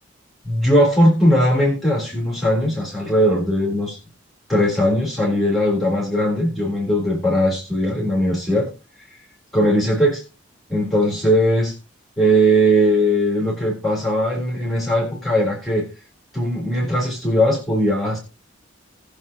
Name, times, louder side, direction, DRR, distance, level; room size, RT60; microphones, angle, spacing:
voice 1, 0.4-4.0 4.5-8.7 9.5-10.2 10.7-11.7 12.2-15.8 16.3-18.2, equal, ahead, -4 dB, 3.4 m, -19 dB
20.0 x 6.9 x 2.9 m, 0.31 s
head